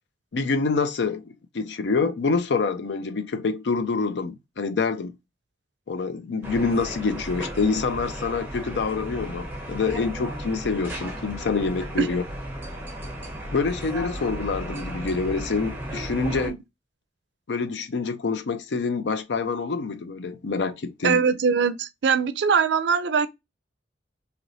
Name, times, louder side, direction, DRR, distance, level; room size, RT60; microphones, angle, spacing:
voice 1, 0.3-5.1 5.9-12.2 13.5-16.5 17.5-21.2, left 4 dB, 80° left, 0.5 m, -26 dB
sound 1, 6.4-16.5, right 1 dB, 10° right, 0.8 m, -35 dB
voice 2, 21.0-23.3, right 6 dB, 80° right, 0.4 m, -22 dB
3.2 x 2.9 x 2.5 m
head